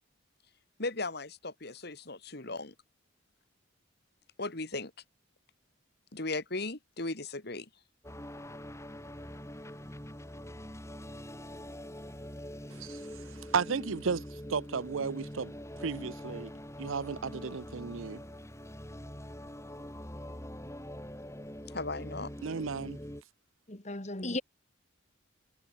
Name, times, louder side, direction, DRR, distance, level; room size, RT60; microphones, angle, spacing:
voice 1, 0.8-2.7 4.4-4.9 6.1-7.7 21.7-22.3, left 2 dB, 55° left, 2.6 m, -37 dB
sound 1, 8.0-23.2, equal, 15° left, 5.4 m, -44 dB
voice 2, 13.5-14.2 14.5-15.5 15.8-16.5 16.8-18.2 22.4-23.0, right 5 dB, 85° right, 0.6 m, -33 dB
voice 3, 23.7-24.4, left 2 dB, 35° left, 2.5 m, -35 dB
head